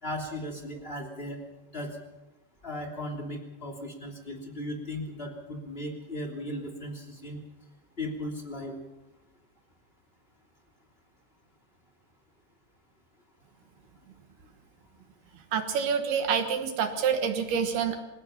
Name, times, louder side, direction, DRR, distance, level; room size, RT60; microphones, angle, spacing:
voice 1, 0.0-1.4 1.7-2.0 2.6-7.4 8.0-8.8, left 1 dB, 20° left, 3 dB, 1.9 m, -37 dB
voice 2, 15.3-18.0, right 7 dB, 65° right, 7 dB, 2.7 m, -27 dB
26.0 x 17.5 x 5.8 m, 1.1 s
omnidirectional pair, 5.8 m